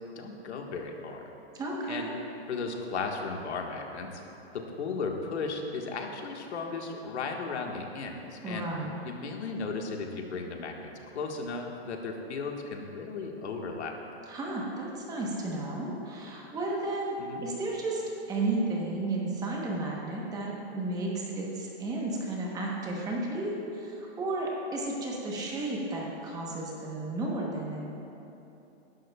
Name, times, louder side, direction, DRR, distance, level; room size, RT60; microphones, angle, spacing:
voice 1, 0.1-1.3 1.9-2.1 2.5-4.2 4.5-8.7 9.0-14.0 17.2-17.5, left 4 dB, 85° left, 2 dB, 1.6 m, -35 dB
voice 2, 1.5-2.1 8.4-8.9 14.3-17.2 17.4-18.0 18.3-27.9, right 2 dB, 10° right, -2 dB, 1.0 m, -33 dB
18.5 x 11.0 x 2.3 m, 3.0 s
hypercardioid pair, 160°, 33 cm